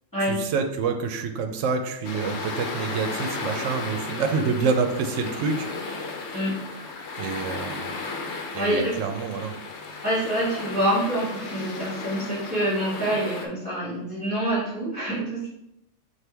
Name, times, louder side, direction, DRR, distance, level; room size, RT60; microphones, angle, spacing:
voice 1, 0.3-5.6 7.2-7.9 8.5-9.6, right 5 dB, 80° right, 6 dB, 0.9 m, -27 dB
sound 1, 2.0-13.5, left 3 dB, 65° left, 0.9 m, -35 dB
voice 2, 8.5-8.9 10.0-15.5, right 1 dB, 15° left, -11 dB, 1.8 m, -26 dB
5.9 x 2.6 x 3.4 m, 0.83 s
omnidirectional pair, 1.3 m